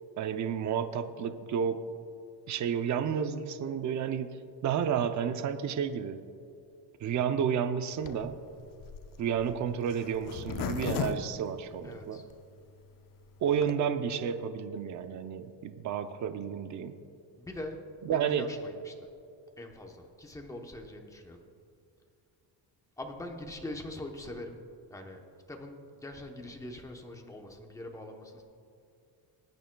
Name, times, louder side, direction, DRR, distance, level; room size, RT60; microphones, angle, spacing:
voice 1, 0.2-1.8 2.5-4.4 4.6-6.2 7.0-8.4 9.2-12.2 13.4-16.9 18.1-18.5, right 8 dB, 40° right, 9 dB, 0.5 m, -31 dB
Zipper (clothing), 8.0-12.3 12.8-12.9 13.1-13.2 13.4-13.7, left 7 dB, 45° left, 0.6 m, -37 dB
voice 2, 11.8-12.3 17.4-17.8 18.1-19.1 19.6-21.5 23.0-24.6 24.9-28.4, left 1 dB, 5° left, 2 dB, 0.8 m, -43 dB
20.5 x 9.0 x 2.2 m, 2.5 s
cardioid pair, 160°, 46 cm